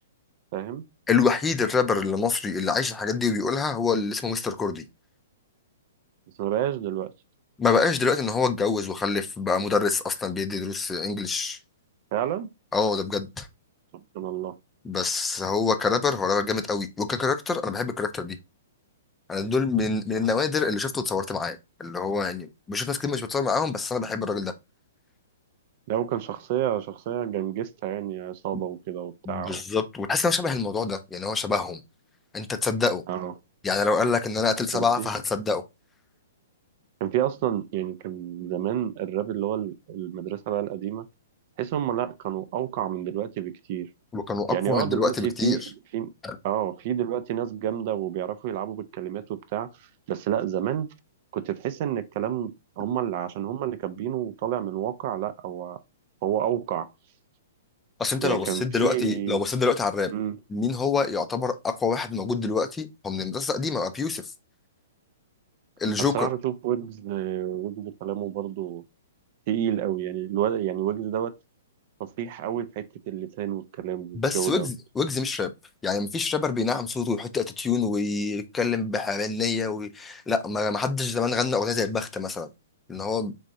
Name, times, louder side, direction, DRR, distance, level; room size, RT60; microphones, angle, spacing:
voice 1, 0.5-0.8 6.4-7.1 12.1-12.5 14.1-14.6 25.9-29.6 33.1-33.3 34.7-35.1 37.0-41.1 41.6-43.9 44.5-45.6 45.9-46.1 46.4-49.7 50.1-50.9 51.3-55.8 56.2-56.9 58.2-59.4 60.1-60.3 66.1-68.8 69.5-71.3 72.0-74.7, right 11 dB, 45° right, 0.4 m, -29 dB
voice 2, 1.1-4.8 7.6-11.6 12.7-13.5 14.8-18.4 19.3-24.5 29.3-31.8 32.3-33.0 33.6-35.6 44.1-45.7 46.2-46.4 58.0-60.1 60.5-64.2 65.8-66.3 74.2-75.5 75.8-82.5 82.9-83.3, left 4 dB, 15° left, 0.5 m, -26 dB
4.0 x 3.5 x 2.5 m
figure-of-eight pair, 115°, 0 cm